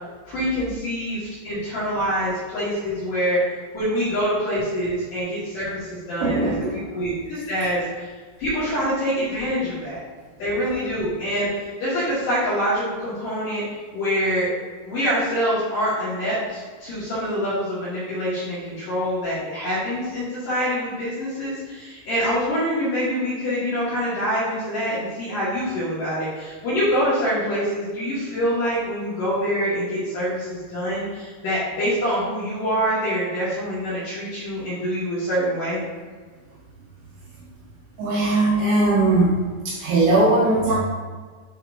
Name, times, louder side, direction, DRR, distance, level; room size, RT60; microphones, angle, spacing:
voice 1, 0.3-3.4 3.7-6.5 6.9-8.1 8.4-10.0 10.4-13.6 13.9-14.5 14.8-35.8, equal, 60° left, -11 dB, 2.5 m, -25 dB
voice 2, 6.2-6.8 38.0-39.4 39.7-40.8, right 2 dB, 75° right, -6 dB, 3.0 m, -19 dB
9.3 x 4.2 x 2.6 m, 1.5 s
omnidirectional pair, 5.8 m